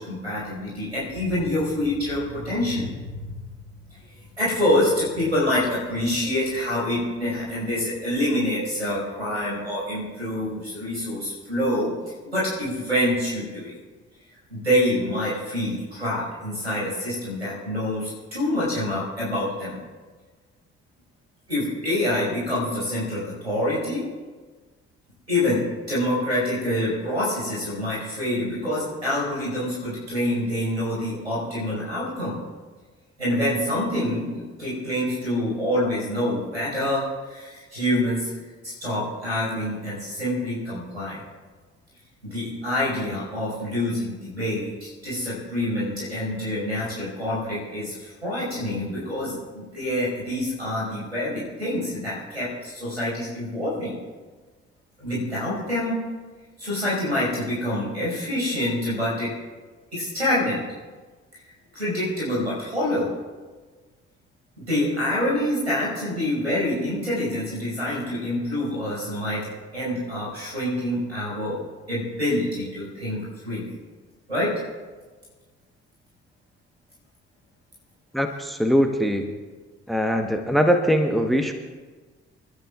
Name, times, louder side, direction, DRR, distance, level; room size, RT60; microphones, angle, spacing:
voice 1, 0.0-2.9 4.4-11.9 12.2-13.7 14.5-19.8 21.5-24.1 25.3-32.4 33.2-38.3 38.6-41.2 42.2-53.9 55.0-56.0 56.6-59.3 59.9-60.6 61.7-63.1 64.7-71.6 71.9-73.7 74.3-74.5, left 1 dB, 90° right, -8 dB, 5.5 m, -26 dB
voice 2, 78.1-79.2 79.9-81.5, equal, ahead, 5 dB, 1.3 m, -21 dB
29.0 x 13.0 x 2.5 m, 1.4 s
figure-of-eight pair, 45°, 32 cm